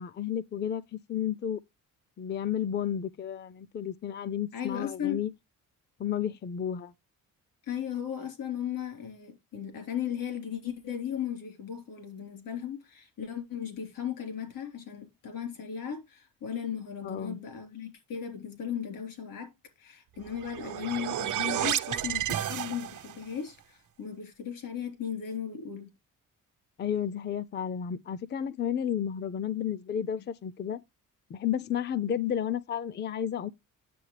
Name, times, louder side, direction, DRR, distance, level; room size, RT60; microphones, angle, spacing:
voice 1, 0.0-1.6 2.2-5.3 6.0-6.9 17.0-17.4 26.8-30.8 31.3-33.5, left 9 dB, 35° left, 0.4 m, -32 dB
voice 2, 4.5-5.2 7.6-19.5 19.8-25.9, left 9 dB, 85° left, 3.7 m, -36 dB
sound 1, 20.2-23.2, right 11 dB, 65° right, 1.0 m, -31 dB
9.4 x 7.8 x 3.3 m
cardioid pair, 135°, 33 cm